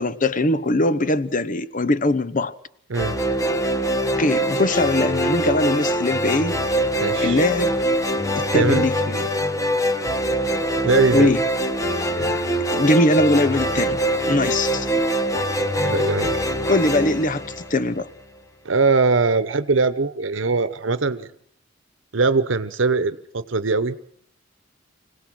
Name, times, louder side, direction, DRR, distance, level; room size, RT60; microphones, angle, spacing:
voice 1, 0.0-2.5 4.2-6.6 7.2-7.7 8.4-9.3 11.1-11.4 12.7-14.0 14.3-14.9 16.7-18.1, left 2 dB, 45° left, 0.9 m, -21 dB
sound 1, 2.9-18.2, right 1 dB, 20° left, 1.2 m, -23 dB
voice 2, 7.0-7.4 8.5-8.9 10.8-11.3 12.2-12.4 15.8-16.5 18.6-21.3 22.1-23.9, right 4 dB, 85° right, 0.9 m, -21 dB
25.5 x 18.0 x 6.3 m
head